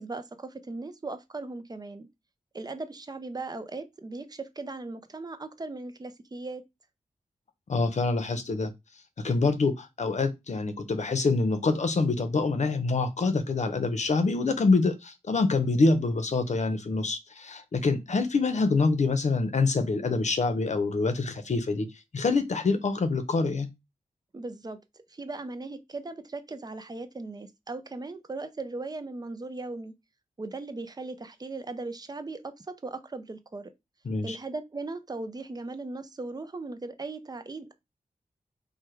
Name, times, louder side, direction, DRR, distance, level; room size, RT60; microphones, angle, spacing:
voice 1, 0.0-2.1 2.5-6.6 24.3-24.8 25.1-29.9 30.4-33.7 34.2-37.7, right 3 dB, 30° right, 0.6 m, -38 dB
voice 2, 7.7-8.7 9.2-21.9 22.1-23.7 34.0-34.4, left 3 dB, 60° left, 0.8 m, -26 dB
4.8 x 2.3 x 4.5 m
wide cardioid pair, 120°, 14 cm